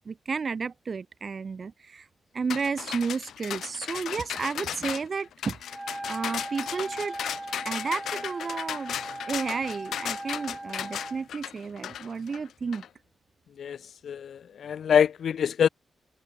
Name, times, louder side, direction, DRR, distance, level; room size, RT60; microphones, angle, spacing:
voice 1, 0.0-2.1 2.3-5.8 6.1-7.2 7.6-9.0 9.3-12.8, right 5 dB, 35° right, 7.1 m, -32 dB
sound 1, 2.5-12.9, left 10 dB, 85° left, 1.4 m, -36 dB
Wind instrument woodwind instrument, 5.6-11.3, right 2 dB, 10° right, 2.6 m, -39 dB
voice 2, 14.0-15.7, left 8 dB, 65° left, 1.9 m, -24 dB
wide cardioid pair, 150°, 0 cm